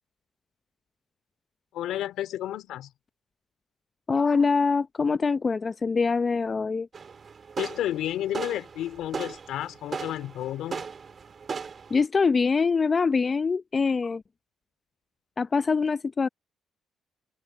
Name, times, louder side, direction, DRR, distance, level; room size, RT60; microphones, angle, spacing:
voice 1, 1.7-2.9 7.6-10.8, left 12 dB, 80° left, 2.9 m, -31 dB
voice 2, 4.1-6.9 11.9-14.2 15.4-16.3, left 4 dB, 40° left, 0.7 m, -24 dB
sound 1, 6.9-12.1, right 5 dB, 50° right, 2.4 m, -38 dB
open air
supercardioid pair, 60°, 0 cm